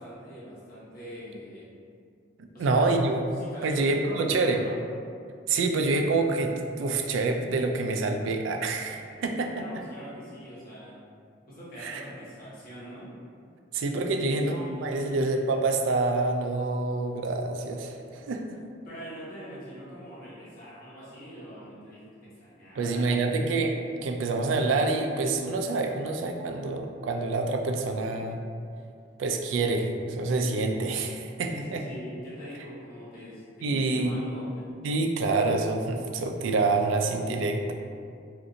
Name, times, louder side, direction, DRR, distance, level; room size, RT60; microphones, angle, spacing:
voice 1, 0.0-1.7 2.5-2.9 3.4-4.7 9.6-11.0 11.5-13.1 14.1-15.3 18.8-23.4 31.4-34.7, equal, 50° left, -9 dB, 1.1 m, -43 dB
voice 2, 2.6-3.2 3.6-4.6 5.5-9.6 11.8-12.0 13.7-18.6 22.8-28.4 29.2-31.8 33.6-34.2 34.8-37.7, right 3 dB, 90° right, 4 dB, 0.3 m, -27 dB
2.6 x 2.5 x 3.7 m, 2.3 s
head